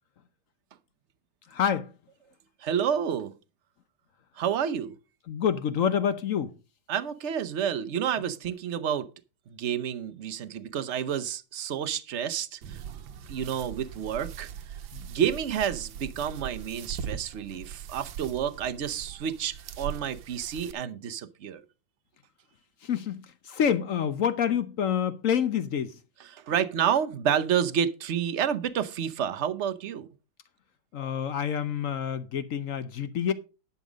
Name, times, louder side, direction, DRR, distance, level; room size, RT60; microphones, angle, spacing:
voice 1, 1.5-1.9 5.3-6.5 14.9-15.1 22.8-26.0 30.9-33.3, left 8 dB, 65° left, 0.8 m, -27 dB
voice 2, 2.6-3.3 4.4-4.9 6.9-9.1 9.5-12.8 13.3-14.5 15.1-21.6 26.3-30.1, right 8 dB, 60° right, 0.7 m, -29 dB
sound 1, 12.6-20.7, right 8 dB, 80° right, 1.6 m, -40 dB
11.0 x 7.2 x 5.0 m
omnidirectional pair, 2.1 m